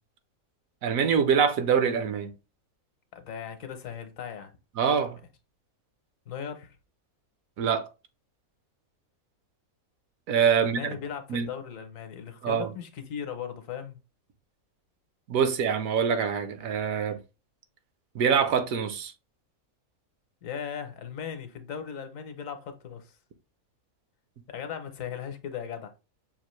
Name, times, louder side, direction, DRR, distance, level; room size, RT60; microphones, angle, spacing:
voice 1, 0.8-2.3 4.8-5.2 7.6-7.9 10.3-10.8 11.3-11.5 12.4-12.7 15.3-17.2 18.1-19.1, right 7 dB, 75° right, 1.0 m, -24 dB
voice 2, 3.1-4.5 6.3-6.8 10.6-14.0 20.4-23.2 24.5-25.9, left 8 dB, 70° left, 1.1 m, -38 dB
5.9 x 2.5 x 3.0 m
omnidirectional pair, 1.5 m